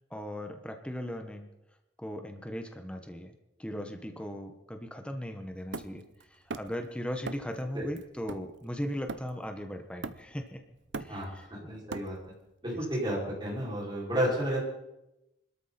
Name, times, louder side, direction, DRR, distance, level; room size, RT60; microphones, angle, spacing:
voice 1, 0.1-1.5 2.0-3.3 3.6-10.6 11.0-11.5, equal, 5° left, 5 dB, 1.2 m, -38 dB
Hammer, 5.7-6.9 7.2-7.6 8.0-9.5 10.0-10.5 10.8-12.4, right 3 dB, 80° right, 0.8 m, -41 dB
voice 2, 11.1-12.2 12.6-14.6, right 1 dB, 25° right, -5 dB, 6.0 m, -32 dB
24.0 x 13.0 x 4.4 m, 0.91 s
head